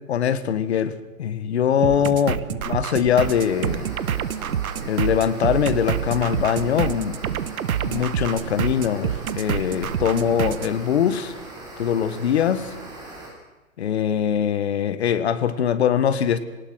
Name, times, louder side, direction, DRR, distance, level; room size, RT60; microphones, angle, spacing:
voice 1, 0.1-3.9 4.9-7.2 7.8-11.3 11.8-12.7 13.8-16.4, left 8 dB, 50° left, 12 dB, 1.7 m, -22 dB
sound 1, 1.8-10.7, right 9 dB, 80° right, 1.3 m, -27 dB
sound 2, 3.2-13.3, right 2 dB, 10° right, 3.5 m, -40 dB
23.5 x 19.0 x 6.4 m, 1.2 s
hypercardioid pair, 170°, 42 cm